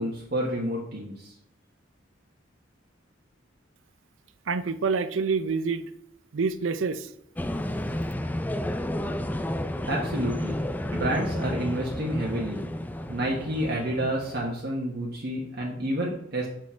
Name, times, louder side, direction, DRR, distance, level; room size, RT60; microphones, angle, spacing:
voice 1, 0.0-1.3 9.9-12.6 13.1-16.5, right 1 dB, 55° right, -3 dB, 1.4 m, -29 dB
voice 2, 4.5-5.8 6.3-7.1, right 4 dB, 90° right, 13 dB, 0.6 m, -27 dB
sound 1, 7.4-14.5, left 1 dB, 10° left, 0.4 m, -31 dB
6.6 x 6.0 x 4.4 m, 0.79 s
head